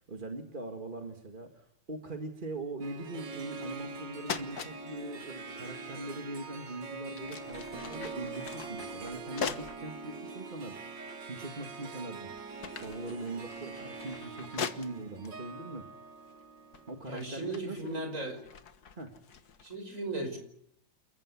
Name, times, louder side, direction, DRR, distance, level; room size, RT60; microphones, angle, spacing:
voice 1, 0.1-15.8 16.9-18.1 19.0-19.1, right 2 dB, 30° right, 5 dB, 1.9 m, -41 dB
Harp, 2.8-17.3, right 4 dB, 85° right, 2.4 m, -44 dB
sound 1, 3.6-4.0 4.2-4.8 6.4-6.6 7.0-9.9 10.5-10.6 11.3-11.8 12.2-15.3 16.2-16.4 16.7-19.8, left 6 dB, 60° left, 1.9 m, -42 dB
voice 2, 17.0-18.4 19.6-20.4, right 2 dB, 45° right, 7 dB, 5.6 m, -37 dB
29.0 x 14.5 x 9.9 m, 0.70 s
omnidirectional pair, 1.9 m